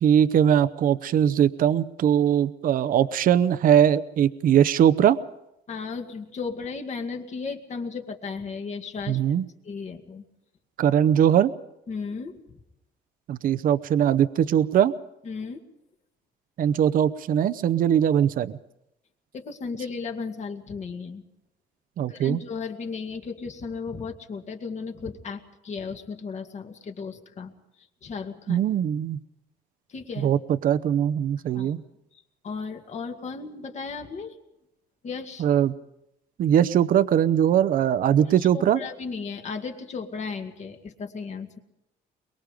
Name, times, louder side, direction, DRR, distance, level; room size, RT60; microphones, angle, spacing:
voice 1, 0.0-5.2 9.1-9.4 10.8-11.5 13.3-14.9 16.6-18.6 22.0-22.4 28.5-29.2 30.2-31.8 35.4-35.7 36.4-38.8, right 9 dB, 55° right, 14 dB, 0.8 m, -21 dB
voice 2, 5.7-9.2 9.6-10.2 11.9-12.4 15.2-15.6 19.3-21.2 22.1-27.5 28.0-28.7 29.9-30.3 31.5-31.7 32.1-34.4 35.0-35.5 38.4-41.6, left 5 dB, 45° left, 5 dB, 2.1 m, -35 dB
23.0 x 22.5 x 5.2 m, 0.84 s
cardioid pair, 110°, 17 cm